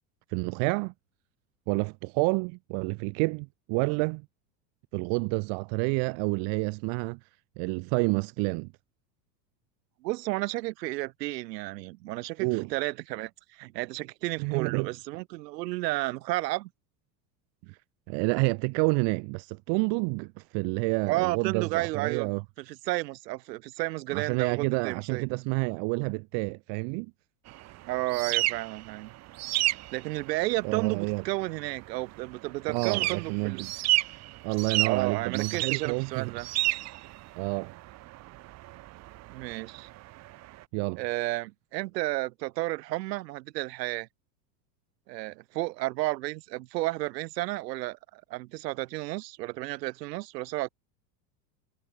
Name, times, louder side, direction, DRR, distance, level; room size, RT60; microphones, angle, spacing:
voice 1, 0.3-0.9 1.7-4.2 4.9-7.2 7.6-8.7 12.4-12.7 14.4-14.9 17.7-17.8 18.1-22.4 24.1-27.1 30.6-31.2 32.7-33.7 34.4-36.3 37.4-37.7 40.7-41.0, right 37 dB, 55° right, 1.2 m, -29 dB
voice 2, 10.0-16.7 21.1-22.3 22.7-25.2 27.9-29.1 29.9-33.6 34.8-36.5 39.3-39.9 41.0-44.1 45.1-50.7, right 19 dB, 75° right, 2.7 m, -32 dB
sound 1, 27.5-40.6, right 18 dB, 35° right, 0.6 m, -33 dB
supercardioid pair, 115°, 49 cm